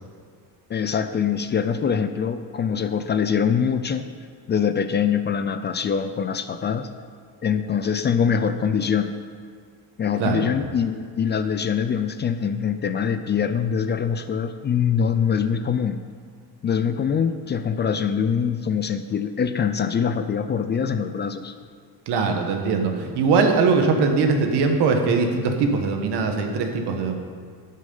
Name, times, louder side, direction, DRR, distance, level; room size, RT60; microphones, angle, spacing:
voice 1, 0.7-4.1 4.5-6.9 7.4-9.1 10.0-16.0 16.6-21.5, left 7 dB, 30° left, 10 dB, 0.4 m, -23 dB
voice 2, 22.1-27.2, right 4 dB, 85° right, 4 dB, 1.5 m, -21 dB
15.5 x 6.5 x 5.5 m, 2.1 s
cardioid pair, 145°, 39 cm